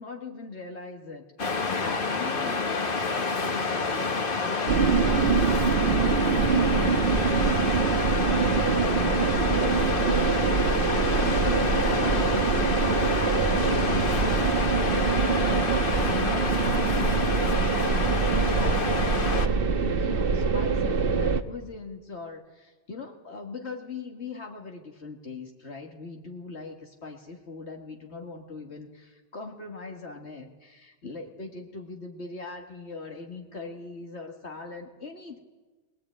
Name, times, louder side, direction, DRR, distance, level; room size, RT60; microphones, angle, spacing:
voice 1, 0.0-35.4, left 4 dB, 80° left, 2 dB, 2.2 m, -40 dB
Waves surf, 1.4-19.5, left 4 dB, 55° left, 1.5 m, -28 dB
sound 1, 4.7-21.4, right 5 dB, 60° right, 1.2 m, -24 dB
22.0 x 20.0 x 8.9 m, 1.2 s
omnidirectional pair, 1.1 m